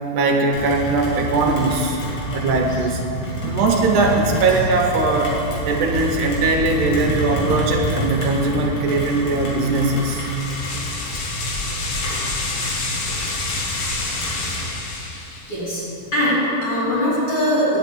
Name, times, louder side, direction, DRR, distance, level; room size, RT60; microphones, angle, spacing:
voice 1, 0.1-2.0 2.3-3.0 3.4-5.3 5.6-10.3, right 3 dB, 75° right, 1 dB, 2.2 m, -20 dB
Rain, 0.5-14.7, equal, 80° left, 3.6 m, -28 dB
sound 1, 10.0-15.6, left 3 dB, 60° left, 2.2 m, -28 dB
voice 2, 15.5-15.8 16.1-17.8, equal, 40° left, -9 dB, 3.6 m, -21 dB
10.5 x 5.7 x 8.4 m, 2.9 s
omnidirectional pair, 3.8 m